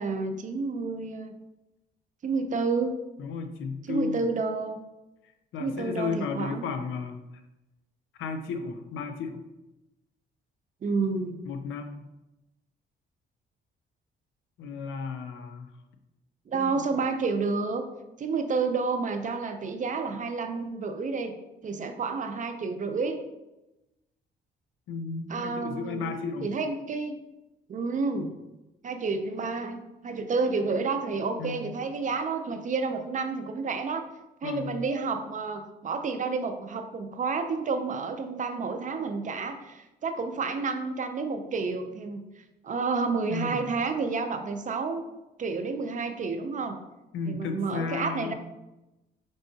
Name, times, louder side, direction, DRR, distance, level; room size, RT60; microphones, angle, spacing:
voice 1, 0.0-1.3 2.2-2.9 3.9-4.8 5.6-6.6 10.8-11.4 16.5-17.8 18.2-21.3 21.6-23.2 25.3-26.1 26.4-27.2 27.7-28.3 28.8-34.1 34.4-42.2 42.6-45.0 45.4-46.8 47.3-48.3, right 4 dB, 40° right, 7 dB, 0.5 m, -30 dB
voice 2, 3.2-4.2 5.5-7.2 8.2-9.4 11.5-12.0 14.6-15.7 16.5-16.9 24.9-26.5 31.4-31.7 34.4-34.8 43.3-43.6 47.1-48.3, left 5 dB, 80° left, 7 dB, 0.6 m, -34 dB
5.3 x 3.4 x 2.7 m, 0.98 s
cardioid pair, 90°, 20 cm